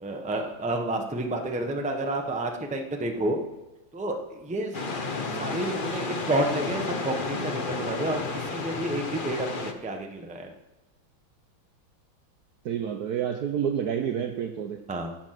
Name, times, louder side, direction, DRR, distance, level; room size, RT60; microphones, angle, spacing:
voice 1, 0.0-3.4 3.9-4.7 5.4-10.5 14.9-15.1, right 1 dB, 5° right, 3 dB, 0.7 m, -30 dB
sound 1, 4.7-9.7, left 3 dB, 45° left, 0.6 m, -32 dB
voice 2, 12.6-14.8, right 8 dB, 65° right, 6 dB, 1.0 m, -29 dB
15.5 x 7.4 x 5.9 m, 1.1 s
omnidirectional pair, 2.2 m